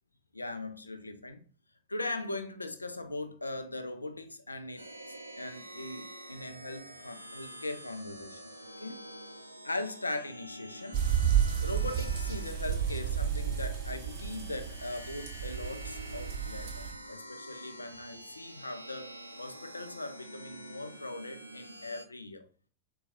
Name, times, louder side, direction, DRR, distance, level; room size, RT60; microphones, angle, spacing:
voice 1, 0.3-1.4 1.9-4.9 5.4-8.4 8.8-9.0 9.6-11.0 11.6-22.5, left 2 dB, 80° left, 0.4 m, -40 dB
sound 1, 4.8-22.1, right 1 dB, 85° right, 0.3 m, -47 dB
sound 2, 10.9-16.9, right 8 dB, 40° right, 0.7 m, -32 dB
4.2 x 2.2 x 2.4 m
figure-of-eight pair, 90°, 0 cm